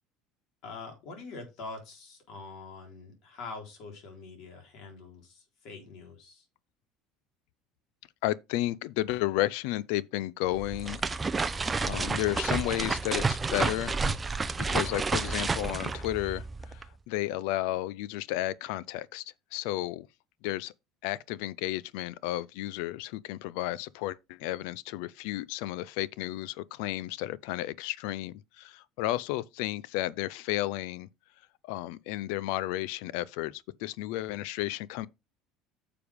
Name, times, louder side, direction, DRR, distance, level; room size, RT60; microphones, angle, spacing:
voice 1, 0.6-6.4, left 3 dB, 55° left, 3.8 m, -44 dB
voice 2, 8.2-11.0 11.8-14.0 14.7-20.1 20.4-20.7 21.0-31.1 31.6-35.1, left 15 dB, 75° left, 0.5 m, -32 dB
sound 1, 10.5-16.9, right 4 dB, 15° right, 0.6 m, -30 dB
9.4 x 6.9 x 3.5 m
cardioid pair, 155°, 0 cm